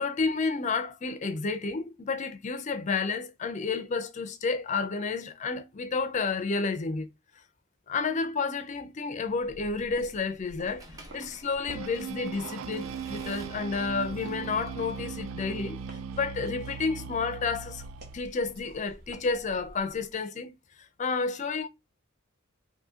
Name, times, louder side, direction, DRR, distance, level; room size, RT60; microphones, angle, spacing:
voice 1, 0.0-7.1 7.9-10.8 11.1-15.8 16.1-17.8 18.1-21.7, left 4 dB, 35° left, 0.4 m, -31 dB
sound 1, 9.2-20.1, right 1 dB, 50° right, 1.0 m, -51 dB
Accelerating revving vroom / Mechanisms, 10.8-15.7, right 1 dB, 15° right, 0.7 m, -52 dB
sound 2, 11.7-18.2, right 6 dB, 75° right, 0.3 m, -39 dB
2.8 x 2.6 x 3.6 m
head